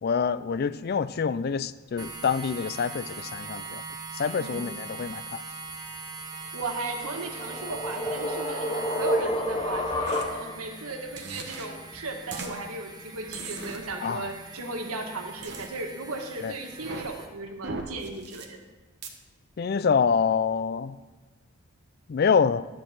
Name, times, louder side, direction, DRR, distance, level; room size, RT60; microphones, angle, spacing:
voice 1, 0.0-3.8 4.1-5.4 14.0-14.3 16.4-16.5 19.6-21.0 22.1-22.7, left 6 dB, 45° left, 0.3 m, -26 dB
sound 1, 2.0-17.3, right 4 dB, 20° right, 0.8 m, -41 dB
voice 2, 4.4-4.8 6.5-18.6, right 2 dB, 85° right, 1.5 m, -36 dB
sound 2, 7.0-10.7, equal, 20° left, 0.8 m, -29 dB
sound 3, 10.1-10.2 11.2-11.7 12.3-12.5 13.3-13.8 15.4-15.7 16.7-17.1 17.6-18.4 19.0-19.1, right 4 dB, 50° right, 1.1 m, -37 dB
12.5 x 4.7 x 7.3 m
head